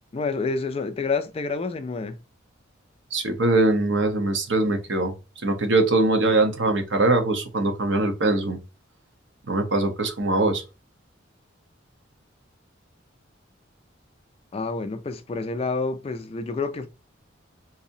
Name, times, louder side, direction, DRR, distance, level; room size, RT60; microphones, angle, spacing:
voice 1, 0.1-2.2 14.5-16.9, left 4 dB, 30° left, 0.3 m, -28 dB
voice 2, 3.1-5.1 5.4-8.6 9.5-10.6, right 2 dB, 65° right, 0.9 m, -22 dB
4.0 x 2.7 x 2.7 m
head